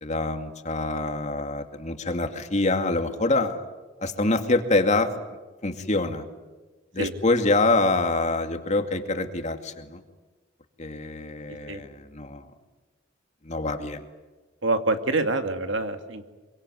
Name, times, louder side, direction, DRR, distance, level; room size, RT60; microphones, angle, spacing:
voice 1, 0.0-3.6 4.0-5.1 5.6-6.2 6.9-10.0 10.8-12.4 13.4-14.0, left 2 dB, 40° left, 6 dB, 2.4 m, -25 dB
voice 2, 14.6-16.3, right 2 dB, 80° right, 7 dB, 2.3 m, -26 dB
26.5 x 24.0 x 9.4 m, 1.3 s
head